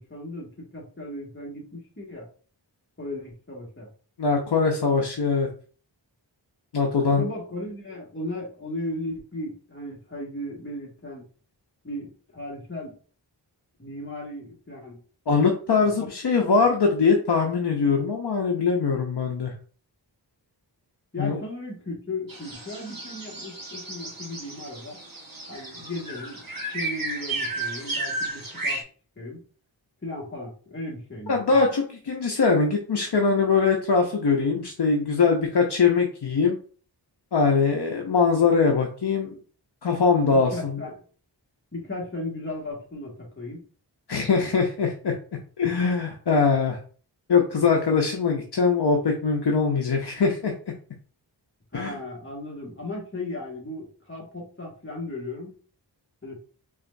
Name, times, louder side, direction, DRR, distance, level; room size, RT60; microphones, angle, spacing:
voice 1, 0.0-2.3 3.0-3.9 7.0-11.3 11.8-12.9 13.8-15.0 15.8-16.1 21.1-25.0 25.5-28.8 29.2-29.4 30.0-31.6 40.3-41.0 41.7-43.6 51.7-55.6 56.2-56.4, left 2 dB, 25° left, -3 dB, 1.7 m, -36 dB
voice 2, 4.2-5.5 6.7-7.2 15.3-19.5 21.2-21.4 31.3-36.6 37.3-39.4 39.8-40.8 44.1-45.1 45.6-46.8 47.3-50.5 51.7-51.9, left 5 dB, 65° left, 1 dB, 0.8 m, -22 dB
sound 1, 22.3-28.8, right 2 dB, 50° right, 1.3 m, -33 dB
4.9 x 3.2 x 2.6 m, 0.40 s
wide cardioid pair, 75°, 44 cm